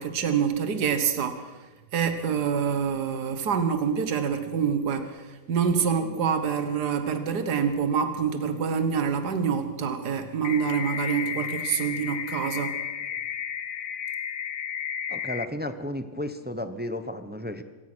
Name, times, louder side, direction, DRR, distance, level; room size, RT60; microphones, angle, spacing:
voice 1, 0.0-1.5 1.9-12.8, right 7 dB, 70° right, 8 dB, 2.0 m, -26 dB
sound 1, 10.4-15.5, left 8 dB, 65° left, 1.4 m, -33 dB
voice 2, 15.1-17.6, left 1 dB, 10° right, 10 dB, 0.8 m, -33 dB
25.5 x 18.0 x 6.3 m, 1.2 s
omnidirectional pair, 1.8 m